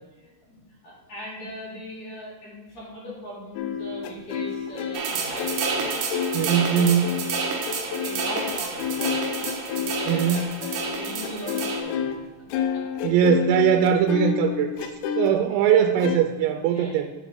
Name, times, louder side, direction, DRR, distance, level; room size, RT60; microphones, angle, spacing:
voice 1, 0.1-5.9 6.4-7.2 7.6-9.3 9.7-12.2 12.5-12.8 15.5-15.6 16.6-17.0, equal, 40° left, -7 dB, 3.2 m, -40 dB
sound 1, 3.6-12.2 12.5-15.3 16.0-16.2, left 7 dB, 90° left, 3.4 m, -30 dB
sound 2, 4.9-11.8, right 5 dB, 70° right, 2.9 m, -30 dB
voice 2, 6.3-7.2 10.1-10.5 13.0-14.9 15.2-17.1, right 8 dB, 90° right, 6 dB, 3.3 m, -21 dB
10.5 x 6.3 x 3.5 m, 1.3 s
omnidirectional pair, 5.9 m